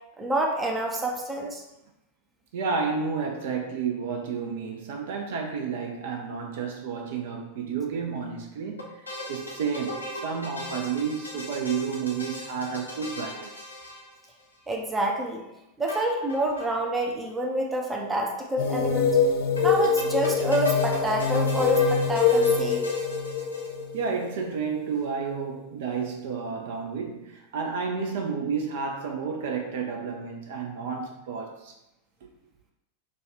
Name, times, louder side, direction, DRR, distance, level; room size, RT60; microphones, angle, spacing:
voice 1, 0.2-1.6 14.7-15.5 15.8-19.1 19.6-22.8, right 1 dB, 10° right, 0.6 m, -28 dB
voice 2, 2.5-13.7 23.9-31.7, right 5 dB, 55° right, 0.6 m, -31 dB
sound 1, 8.8-14.6 15.9-16.7 17.0-17.1 17.3-17.4 19.6-24.1, left 1 dB, 80° left, 0.8 m, -39 dB
sound 2, 18.6-25.0, left 5 dB, 50° left, 0.3 m, -24 dB
3.2 x 2.3 x 4.2 m
figure-of-eight pair, 90°, 0 cm